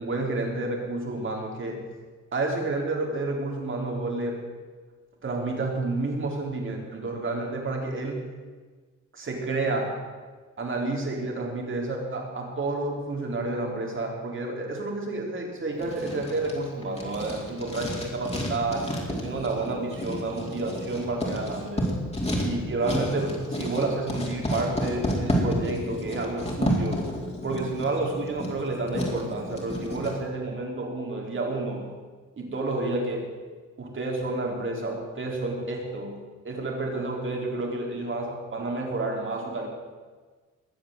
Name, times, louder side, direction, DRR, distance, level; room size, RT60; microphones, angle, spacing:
voice 1, 0.0-1.8 2.3-4.4 5.2-8.2 9.1-9.9 10.6-21.9 22.4-27.0 27.4-31.9 32.3-33.3 33.8-36.2 36.4-39.7, right 2 dB, 40° right, 0 dB, 4.4 m, -30 dB
Writing, 15.8-30.1, equal, 20° left, 4.2 m, -31 dB
21.0 x 7.5 x 8.0 m, 1.4 s
cardioid pair, 90°, 30 cm